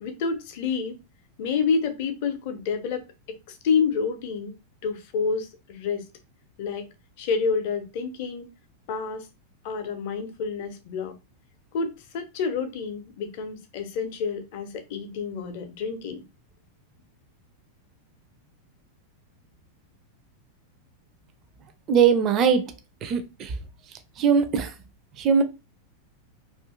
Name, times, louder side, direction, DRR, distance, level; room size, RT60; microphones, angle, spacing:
voice 1, 0.0-1.0 1.4-4.5 4.8-6.0 6.6-6.9 7.2-8.5 8.9-9.3 9.6-11.1 11.7-16.2, left 5 dB, 50° left, 0.6 m, -28 dB
voice 2, 21.9-22.6 23.0-23.5 24.2-24.7 25.2-25.4, right 6 dB, 35° right, 0.4 m, -20 dB
2.5 x 2.5 x 2.4 m
figure-of-eight pair, 90°, 0 cm